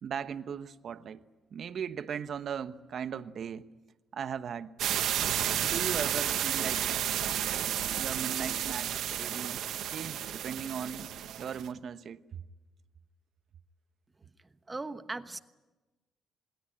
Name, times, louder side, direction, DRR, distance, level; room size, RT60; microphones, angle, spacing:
voice 1, 0.0-1.2 1.5-3.7 4.1-4.7 5.6-6.8 7.9-12.2, right 7 dB, 60° right, 1.1 m, -38 dB
sound 1, 4.8-11.7, right 10 dB, 80° right, 1.2 m, -32 dB
voice 2, 14.2-15.4, right 3 dB, 20° right, 1.2 m, -40 dB
27.0 x 21.0 x 8.8 m
cardioid pair, 100°, 0 cm